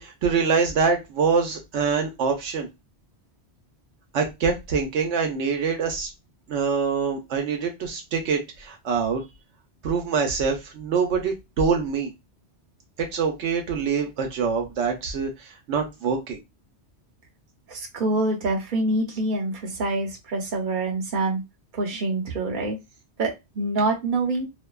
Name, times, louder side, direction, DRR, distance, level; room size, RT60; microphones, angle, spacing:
voice 1, 0.0-2.7 4.1-6.1 6.5-9.2 9.8-12.1 13.0-16.4, right 5 dB, 85° right, 3 dB, 0.9 m, -25 dB
voice 2, 17.7-21.4 21.7-22.8 23.2-24.5, right 2 dB, 50° right, 0 dB, 0.8 m, -26 dB
2.6 x 2.1 x 2.2 m, 0.22 s
omnidirectional pair, 1.2 m